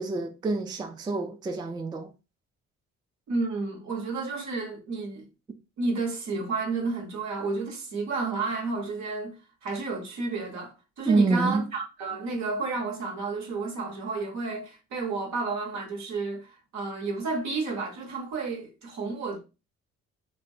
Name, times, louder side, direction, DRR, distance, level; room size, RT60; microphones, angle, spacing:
voice 1, 0.0-2.1 11.1-11.7, right 3 dB, 15° right, 0.3 m, -27 dB
voice 2, 3.3-5.3 5.8-19.4, right 3 dB, 65° right, 1.0 m, -31 dB
2.9 x 2.2 x 2.6 m
cardioid pair, 90°, 30 cm